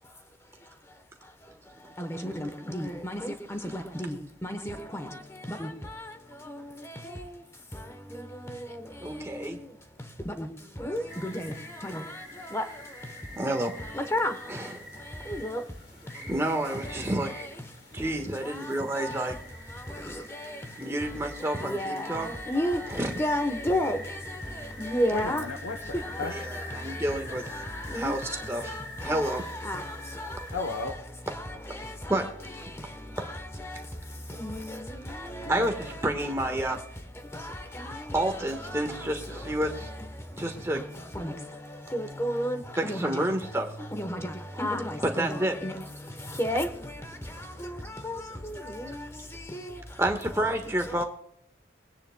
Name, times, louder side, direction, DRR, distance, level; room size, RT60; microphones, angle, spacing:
voice 1, 3.7-4.1 4.7-4.8 10.9-11.3 12.5-12.6 14.1-14.3 21.8-22.0 22.5-22.8 23.2-24.0 24.8-25.4 27.9-28.1 29.7-29.8 42.2-42.6 44.0-44.1 44.6-44.8 45.2-45.3 45.6-45.7 46.4-46.7, equal, 15° left, 0.9 m, -27 dB
voice 2, 9.0-9.6 13.4-13.7 14.5-14.8 16.0-17.3 17.9-19.4 20.8-22.3 22.9-23.1 26.2-27.5 27.9-29.4 32.1-32.2 35.5-36.8 38.1-39.9 40.4-40.8 42.7-43.7 45.1-45.8 48.9-49.0 50.0-51.0, right 1 dB, 15° right, 1.3 m, -30 dB
sound 1, 11.1-30.8, left 1 dB, 65° left, 4.0 m, -45 dB
voice 3, 25.1-26.3 30.5-30.9 35.4-35.7, left 3 dB, 85° left, 0.9 m, -34 dB
24.0 x 9.8 x 2.2 m
head